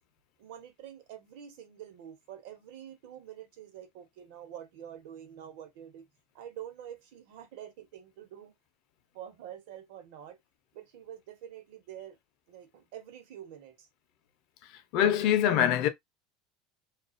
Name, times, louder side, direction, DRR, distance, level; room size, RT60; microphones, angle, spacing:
voice 1, 0.4-6.1 6.3-8.5 9.1-10.4 10.7-12.2 12.5-13.9, right 10 dB, 75° right, 0.9 m, -46 dB
voice 2, 14.7-15.9, left 10 dB, 60° left, 0.5 m, -24 dB
2.4 x 2.3 x 2.5 m
supercardioid pair, 145°, 0 cm